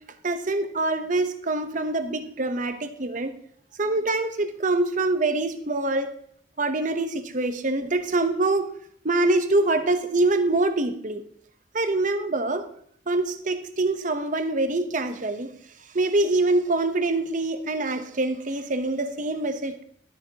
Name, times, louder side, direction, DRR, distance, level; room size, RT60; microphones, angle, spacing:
voice 1, 0.2-3.3 3.8-6.1 6.6-8.7 9.0-11.2 11.7-12.7 13.1-15.5 15.9-19.8, right 2 dB, 45° right, 9 dB, 0.9 m, -25 dB
12.5 x 9.9 x 2.9 m, 0.65 s
head